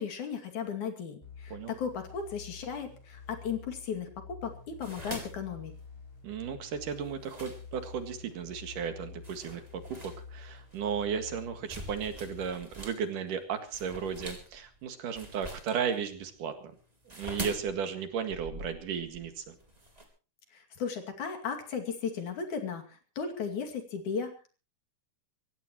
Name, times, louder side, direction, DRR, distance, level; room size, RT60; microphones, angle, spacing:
voice 1, 0.0-5.7 20.5-24.5, left 6 dB, 65° left, 4 dB, 3.8 m, -36 dB
sound 1, 1.2-12.5, left 6 dB, 15° left, 7.8 m, -49 dB
sound 2, 4.6-8.1 8.7-8.9 9.2-13.0 13.3-20.0, right 1 dB, 10° right, 3.4 m, -44 dB
voice 2, 6.2-16.7 17.1-19.6, right 7 dB, 75° right, 7 dB, 3.4 m, -35 dB
24.5 x 16.5 x 3.0 m, 0.35 s
omnidirectional pair, 3.8 m